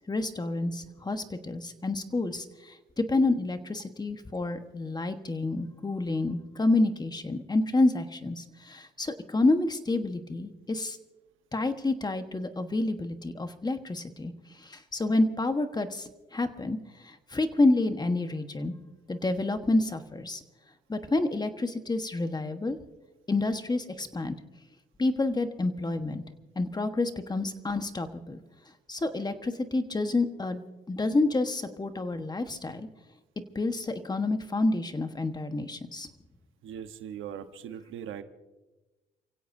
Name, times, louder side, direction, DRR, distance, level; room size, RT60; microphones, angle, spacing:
voice 1, 0.1-11.0 11.5-14.3 14.6-16.8 17.0-18.7 19.1-20.4 20.9-22.8 23.3-24.3 25.0-26.2 26.5-28.4 28.9-30.6 30.9-32.9 33.5-36.1, left 2 dB, 20° left, 8 dB, 1.3 m, -28 dB
voice 2, 36.6-38.2, right 9 dB, 80° right, 8 dB, 1.2 m, -40 dB
29.0 x 16.5 x 2.7 m, 1.1 s
cardioid pair, 90°, 20 cm